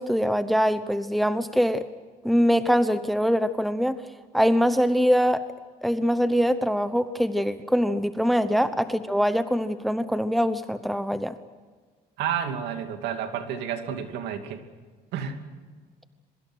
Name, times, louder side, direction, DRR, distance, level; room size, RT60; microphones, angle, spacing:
voice 1, 0.0-1.8 2.2-4.0 4.3-5.4 5.8-11.3, equal, ahead, 11 dB, 0.9 m, -23 dB
voice 2, 12.2-14.6 15.1-15.4, right 8 dB, 85° right, 7 dB, 2.5 m, -30 dB
27.0 x 23.0 x 6.4 m, 1.5 s
cardioid pair, 110°, 17 cm